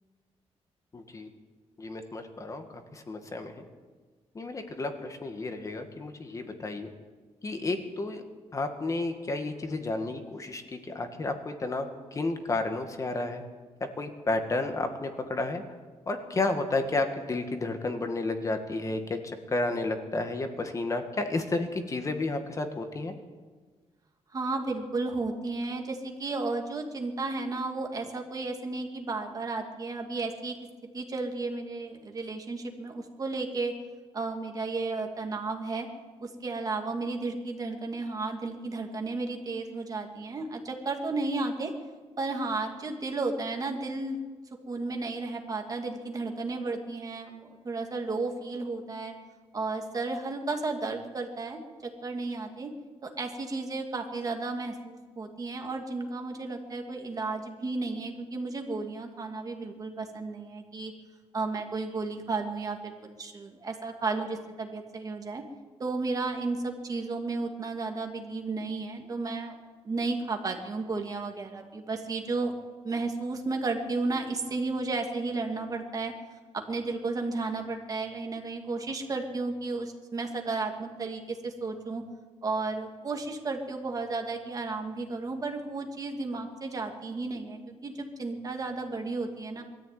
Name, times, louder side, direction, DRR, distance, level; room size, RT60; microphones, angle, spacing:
voice 1, 0.9-1.3 1.8-2.6 2.9-3.6 4.4-6.9 7.4-8.2 8.5-10.6 10.9-13.4 14.0-15.6 16.1-23.1, left 2 dB, 30° left, 6 dB, 1.9 m, -31 dB
voice 2, 24.3-30.6 30.9-33.7 34.1-35.9 36.2-41.7 42.2-44.2 44.7-49.1 49.5-51.6 52.0-52.7 53.0-60.9 61.3-62.9 63.2-65.4 65.8-69.5 69.8-72.5 72.8-76.1 76.5-82.0 82.4-89.6, right 3 dB, 35° right, 3 dB, 2.6 m, -33 dB
22.0 x 14.0 x 9.4 m, 1.4 s
wide cardioid pair, 155°, 11 cm